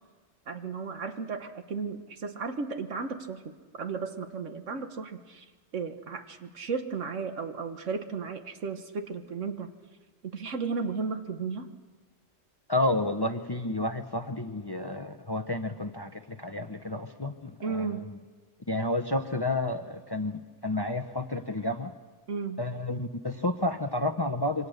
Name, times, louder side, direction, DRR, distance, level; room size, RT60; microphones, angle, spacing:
voice 1, 0.5-5.5 5.7-9.7 10.2-11.7 17.6-18.1 22.3-22.6, right 5 dB, 70° right, 7 dB, 1.6 m, -34 dB
voice 2, 12.7-18.2 18.7-21.9 22.6-24.7, left 2 dB, 25° left, 8 dB, 0.7 m, -31 dB
26.5 x 24.0 x 6.6 m, 1.5 s
omnidirectional pair, 1.3 m